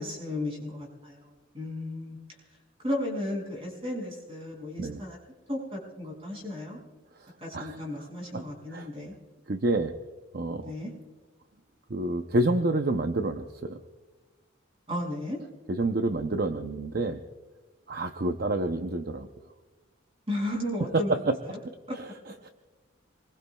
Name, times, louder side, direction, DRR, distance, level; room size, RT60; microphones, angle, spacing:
voice 1, 0.0-2.2 2.8-5.2 5.5-6.8 7.4-9.1 10.6-10.9 14.9-15.4 20.3-21.6 21.9-22.0, left 1 dB, 30° right, -2 dB, 6.1 m, -34 dB
voice 2, 9.5-9.9 10.3-10.7 11.9-13.8 15.7-17.2 17.9-19.3 21.1-21.4 21.6-21.8 22.4-22.5, right 2 dB, 50° right, 6 dB, 0.7 m, -28 dB
27.0 x 21.5 x 2.3 m, 1.3 s
head